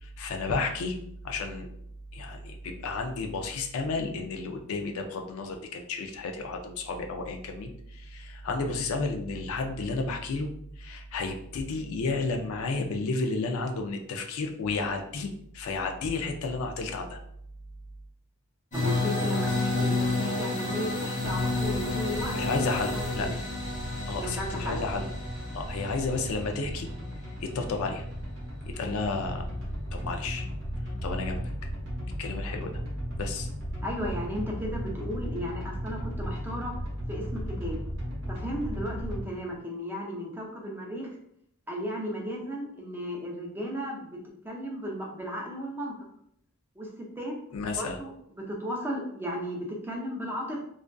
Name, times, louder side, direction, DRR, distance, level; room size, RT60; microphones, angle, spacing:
voice 1, 0.0-1.0 1.2-1.7 2.1-17.2 22.3-23.4 24.1-25.1 25.5-26.9 27.4-28.0 28.7-29.4 29.9-30.5 31.0-31.4 32.2-32.8 33.2-33.5 47.5-48.0, left 3 dB, 70° left, 4 dB, 0.4 m, -32 dB
sound 1, 18.7-27.5, left 2 dB, 35° left, 1.0 m, -30 dB
voice 2, 18.7-23.4 24.2-24.8 33.8-36.7 37.1-37.8 38.3-41.2 41.7-44.2 44.4-45.9 46.8-47.3 47.8-48.1 48.4-50.6, equal, 10° right, -1 dB, 0.4 m, -35 dB
sound 2, 21.2-39.2, equal, 55° right, 0.8 m, -36 dB
2.4 x 2.3 x 2.2 m, 0.71 s
head